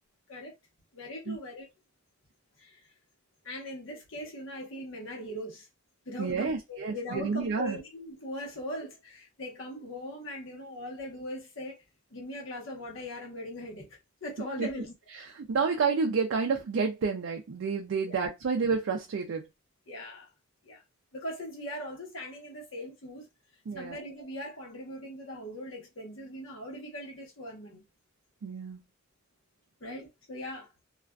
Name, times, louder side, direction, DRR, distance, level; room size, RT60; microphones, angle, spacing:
voice 1, 0.9-1.7 2.6-2.9 3.4-5.7 6.1-11.8 12.1-14.9 18.1-18.2 19.9-20.3 20.6-20.8 21.1-23.3 23.7-27.8 29.8-30.7, left 1 dB, 75° left, 1.0 m, -40 dB
voice 2, 6.2-7.8 14.6-14.7 15.5-19.4 23.7-24.0 28.4-28.8, right 5 dB, 70° right, 0.4 m, -29 dB
2.4 x 2.4 x 2.2 m
head